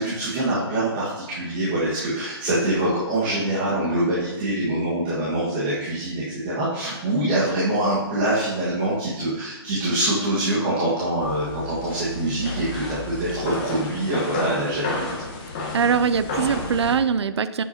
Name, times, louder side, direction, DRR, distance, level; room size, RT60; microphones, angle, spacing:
voice 1, 0.0-15.0, right 1 dB, 20° right, -8 dB, 1.7 m, -24 dB
sound 1, 11.2-17.0, left 2 dB, 20° left, 1.3 m, -31 dB
voice 2, 15.7-17.6, right 6 dB, 75° right, 12 dB, 0.5 m, -22 dB
11.0 x 8.2 x 2.9 m, 1.1 s
hypercardioid pair, 175°, 14 cm